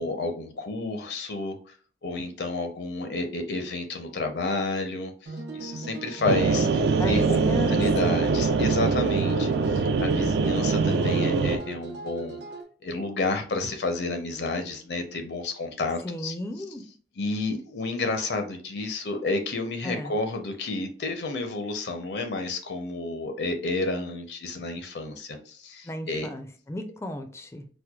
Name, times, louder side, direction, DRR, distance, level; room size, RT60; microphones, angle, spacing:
voice 1, 0.0-1.6 2.0-7.4 7.7-12.4 12.8-16.3 17.2-26.3, left 2 dB, 70° left, 6 dB, 0.5 m, -30 dB
sound 1, 5.3-12.6, right 4 dB, 85° right, 0.7 m, -38 dB
sound 2, 6.2-11.6, right 4 dB, 65° right, 0.3 m, -23 dB
voice 2, 7.0-8.2 16.0-16.8 19.8-20.1 25.8-27.7, left 1 dB, 15° left, 7 dB, 0.4 m, -34 dB
4.3 x 2.1 x 2.3 m, 0.42 s
head